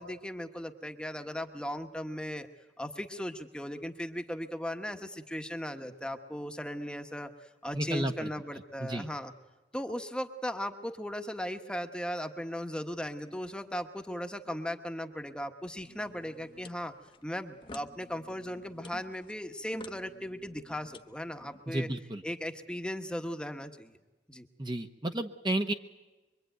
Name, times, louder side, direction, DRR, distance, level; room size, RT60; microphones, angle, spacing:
voice 1, 0.0-2.5 2.8-9.3 9.7-16.9 17.2-21.9 22.2-24.0 24.3-24.5, equal, 5° left, 6 dB, 1.2 m, -37 dB
voice 2, 7.7-8.3 8.8-9.1 21.7-22.2 24.6-25.7, right 1 dB, 25° right, 6 dB, 1.0 m, -32 dB
sound 1, 15.8-21.7, left 2 dB, 30° left, 1.0 m, -52 dB
24.5 x 24.0 x 9.3 m, 1.1 s
head